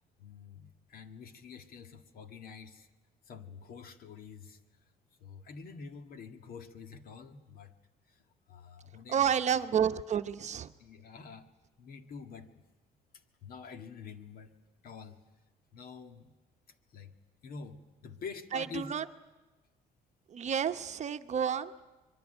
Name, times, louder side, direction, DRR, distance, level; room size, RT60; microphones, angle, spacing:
voice 1, 0.2-2.9 3.3-4.6 5.2-7.7 8.1-8.2 8.5-9.2 10.8-11.5 11.8-12.6 13.4-14.5 14.8-15.2 15.7-16.3 16.9-17.1 17.4-18.9 21.7-21.8, left 5 dB, 60° left, 7 dB, 1.9 m, -47 dB
voice 2, 9.1-10.7 18.5-19.0 20.3-21.7, right 8 dB, 45° right, 9 dB, 0.9 m, -30 dB
25.0 x 22.5 x 9.1 m, 1.2 s
cardioid pair, 110°, 17 cm